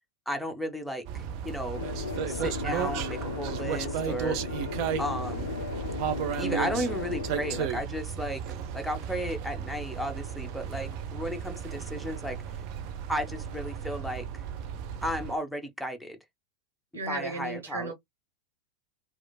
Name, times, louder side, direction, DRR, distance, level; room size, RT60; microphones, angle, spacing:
voice 1, 0.3-1.9 2.3-4.4 5.0-5.5 6.4-8.4 8.7-12.4 13.1-14.3 15.0-16.2 17.1-17.9, equal, ahead, 0.7 m, -34 dB
sound 1, 1.0-15.3, right 8 dB, 45° right, 0.5 m, -34 dB
sound 2, 1.7-7.6, left 6 dB, 65° left, 0.3 m, -36 dB
voice 2, 16.9-17.9, right 3 dB, 70° right, 1.0 m, -34 dB
3.1 x 2.3 x 2.2 m
figure-of-eight pair, 90°, 0 cm